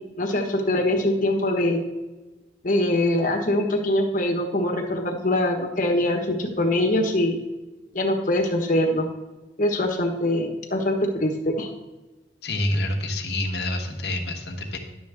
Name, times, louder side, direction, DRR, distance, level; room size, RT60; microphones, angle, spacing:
voice 1, 0.2-1.8 2.6-7.4 7.9-9.1 9.6-11.7, left 1 dB, 45° left, 1 dB, 1.3 m, -23 dB
voice 2, 12.4-14.8, left 1 dB, 60° left, 2 dB, 1.2 m, -27 dB
11.5 x 6.9 x 3.6 m, 1.1 s
head